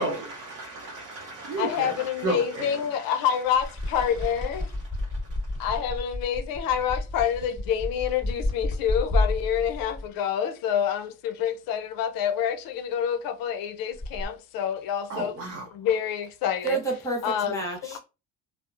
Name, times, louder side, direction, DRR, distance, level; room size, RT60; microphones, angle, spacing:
voice 1, 0.0-2.8 15.1-15.7, right 3 dB, 40° right, 0.7 m, -33 dB
voice 2, 1.6-4.7 5.6-15.3 15.7-16.8 17.2-18.0, left 8 dB, 70° left, 0.6 m, -27 dB
sound 1, 3.5-10.1 13.9-14.3, left 1 dB, 10° right, 1.4 m, -30 dB
voice 3, 16.6-18.0, right 3 dB, 10° left, 0.9 m, -29 dB
2.8 x 2.1 x 2.4 m
cardioid pair, 115°, 36 cm